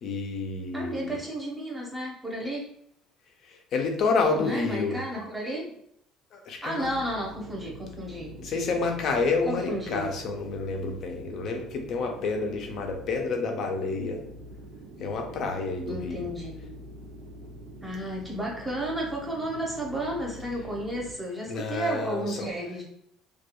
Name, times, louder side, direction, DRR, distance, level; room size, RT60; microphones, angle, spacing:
voice 1, 0.0-1.2 3.5-5.0 6.3-6.9 8.4-14.2 15.0-16.3 21.5-22.5, left 4 dB, 55° left, 3 dB, 0.5 m, -29 dB
voice 2, 0.7-2.7 4.3-5.7 6.6-8.4 9.4-10.1 15.9-16.8 17.8-22.9, right 1 dB, 10° right, -3 dB, 0.7 m, -32 dB
sound 1, 6.8-21.1, right 1 dB, 90° right, 0.4 m, -45 dB
2.3 x 2.3 x 2.8 m, 0.71 s
cardioid pair, 125°, 0 cm